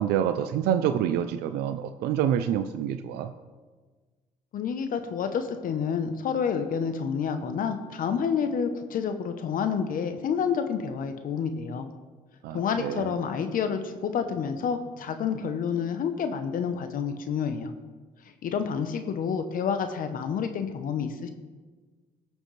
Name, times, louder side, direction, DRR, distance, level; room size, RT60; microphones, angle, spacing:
voice 1, 0.0-3.3 12.4-13.1, right 9 dB, 80° right, 8 dB, 0.5 m, -27 dB
voice 2, 4.5-11.9 12.5-17.7 18.4-21.3, left 6 dB, 60° left, 8 dB, 0.9 m, -29 dB
18.5 x 6.3 x 3.3 m, 1.4 s
supercardioid pair, 75°, 16 cm